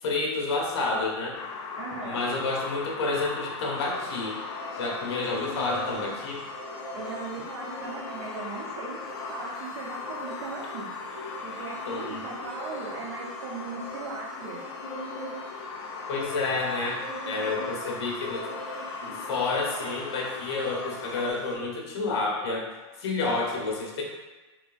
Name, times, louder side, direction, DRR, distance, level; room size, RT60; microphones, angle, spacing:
voice 1, 0.0-1.4 2.0-4.4 4.7-6.4 11.9-12.2 16.1-18.6 19.0-22.7 23.0-24.0, left 3 dB, 60° left, -1 dB, 1.1 m, -29 dB
sound 1, 1.3-21.3, left 4 dB, 75° left, 0.6 m, -39 dB
voice 2, 1.8-2.2 6.9-9.0 9.3-10.9 11.4-14.6, right 4 dB, 60° right, -3 dB, 0.9 m, -38 dB
sound 2, 3.7-21.5, equal, 35° left, 1.1 m, -42 dB
6.2 x 2.3 x 2.6 m, 1.2 s
supercardioid pair, 160°, 15 cm